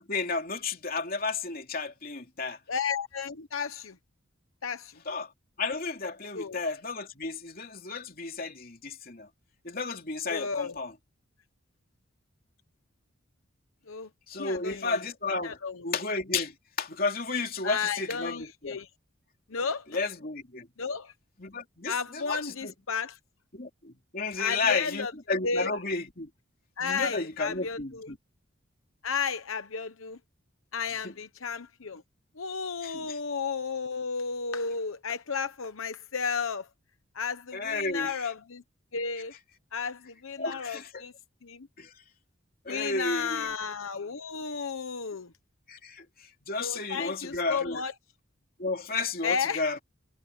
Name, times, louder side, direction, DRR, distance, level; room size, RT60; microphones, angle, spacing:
voice 1, 0.0-2.6 5.1-5.3 5.6-9.3 9.6-10.9 14.3-15.6 15.8-16.5 16.8-18.8 19.9-20.7 21.4-22.7 23.5-26.3 26.8-28.2 32.8-33.2 37.5-38.3 40.4-41.1 41.8-41.9 42.6-43.5 45.7-46.0 46.5-47.8 48.6-49.8, left 3 dB, 45° left, 3.0 m, -32 dB
voice 2, 2.7-3.9 4.6-4.9 6.3-6.6 10.3-10.8 13.9-14.1 14.4-15.0 15.4-15.9 17.6-18.9 19.5-19.9 20.8-21.1 21.9-23.2 24.4-25.1 25.4-25.7 26.8-28.1 29.0-30.2 30.7-32.0 32.4-36.7 37.1-38.6 38.9-39.3 39.7-41.1 41.4-41.7 42.7-45.3 46.6-47.9 49.2-49.6, left 5 dB, 85° left, 1.0 m, -33 dB
head